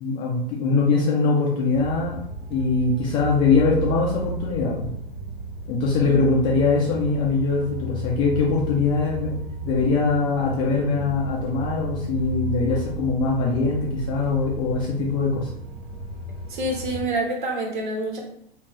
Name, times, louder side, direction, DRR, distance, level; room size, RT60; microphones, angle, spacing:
voice 1, 0.0-2.2 2.5-4.9 5.7-9.3 9.6-15.5, left 4 dB, 15° left, -3 dB, 0.4 m, -22 dB
sound 1, 1.7-17.0, right 2 dB, 80° right, 1.0 m, -33 dB
voice 2, 16.5-18.2, right 1 dB, 55° right, 0 dB, 1.1 m, -27 dB
2.7 x 2.4 x 3.2 m, 0.71 s
figure-of-eight pair, 100°, 30 cm